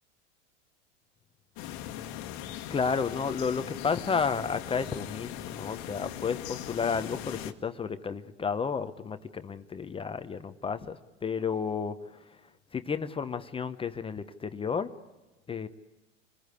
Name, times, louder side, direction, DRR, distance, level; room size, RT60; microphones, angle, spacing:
sound 1, 1.6-7.5, left 11 dB, 45° left, 1.5 m, -40 dB
voice 1, 2.7-12.2 12.7-14.9 15.5-15.7, left 5 dB, 15° left, 10 dB, 0.9 m, -32 dB
29.0 x 20.0 x 8.2 m, 1.1 s
hypercardioid pair, 95°, 36 cm